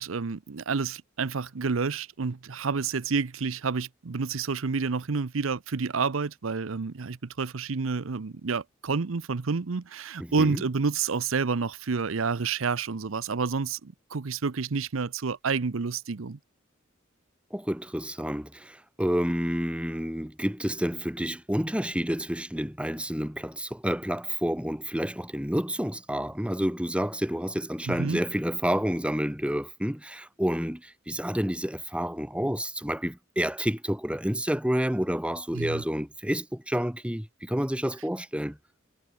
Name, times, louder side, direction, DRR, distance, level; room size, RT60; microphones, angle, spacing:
voice 1, 0.0-16.4 27.9-28.2 35.5-35.8, right 5 dB, 90° right, 0.7 m, -29 dB
voice 2, 10.2-10.6 17.5-38.6, equal, 5° right, 2.2 m, -29 dB
head